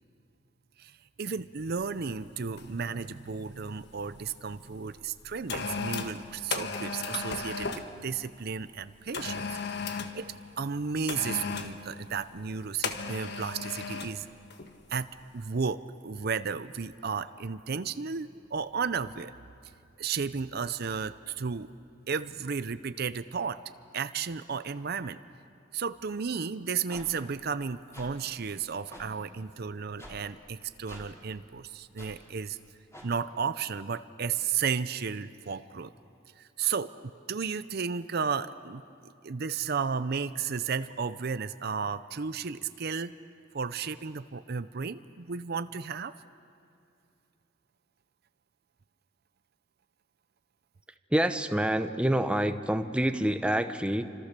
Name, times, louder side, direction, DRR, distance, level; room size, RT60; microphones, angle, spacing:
voice 1, 0.8-9.6 9.9-10.3 10.6-14.3 14.9-15.1 15.3-19.3 20.0-21.7 22.1-23.6 23.9-25.2 25.7-32.6 33.0-35.9 36.4-36.9 37.3-43.1 43.5-46.1, right 6 dB, 55° right, 13 dB, 0.6 m, -33 dB
sound 1, 1.7-1.9 2.6-2.9 3.1-4.3 5.0-7.9 9.1-10.2 11.1-11.8 12.8-14.2 14.5-14.7, left 4 dB, 60° left, 1.5 m, -35 dB
sound 2, 26.9-27.0 27.9-28.1 28.9-29.0 30.0-30.1 30.9-31.0 32.0-32.1 32.9-33.1, equal, 15° left, 4.5 m, -46 dB
voice 2, 51.1-54.0, right 1 dB, 5° right, 8 dB, 0.8 m, -27 dB
29.5 x 26.0 x 6.8 m, 2.5 s
head